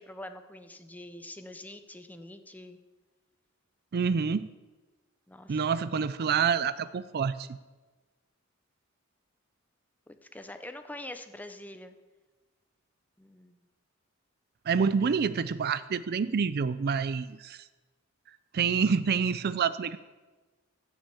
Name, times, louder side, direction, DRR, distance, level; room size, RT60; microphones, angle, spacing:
voice 1, 0.0-2.8 5.3-5.6 10.1-11.9 13.2-13.7, left 1 dB, 10° left, 8 dB, 0.7 m, -45 dB
voice 2, 3.9-4.5 5.5-7.5 14.7-17.6 18.5-20.0, right 6 dB, 50° right, 14 dB, 0.4 m, -27 dB
14.5 x 6.3 x 8.3 m, 1.2 s
head